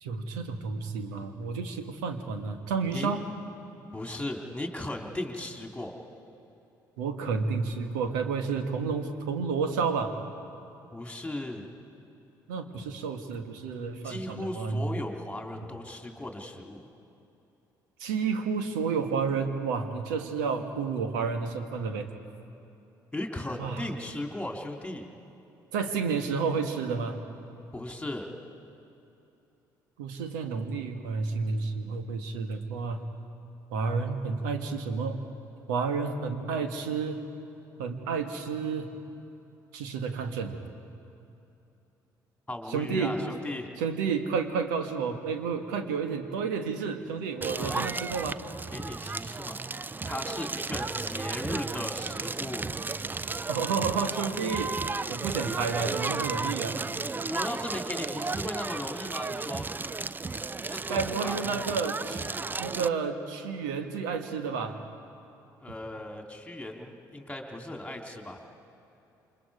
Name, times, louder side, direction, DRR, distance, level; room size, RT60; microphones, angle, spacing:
voice 1, 0.0-3.2 7.0-10.1 12.5-14.8 18.0-22.1 23.6-23.9 25.7-27.2 30.0-33.1 33.7-35.2 35.7-37.2 37.8-38.9 39.7-40.6 42.7-43.2 43.8-48.4 53.5-54.8 55.1-56.8 60.9-62.3 62.6-64.8, right 5 dB, 70° right, 7 dB, 1.5 m, -31 dB
voice 2, 3.9-5.9 10.9-11.7 14.0-16.9 23.1-25.1 27.7-28.3 42.5-43.7 47.5-48.0 48.7-49.6 50.0-52.7 57.3-59.7 60.7-61.4 65.6-68.4, left 1 dB, 10° left, 2 dB, 3.0 m, -37 dB
Crackle, 47.4-62.9, right 3 dB, 20° right, 0.5 m, -34 dB
28.0 x 25.5 x 4.9 m, 2.9 s
figure-of-eight pair, 50°, 11 cm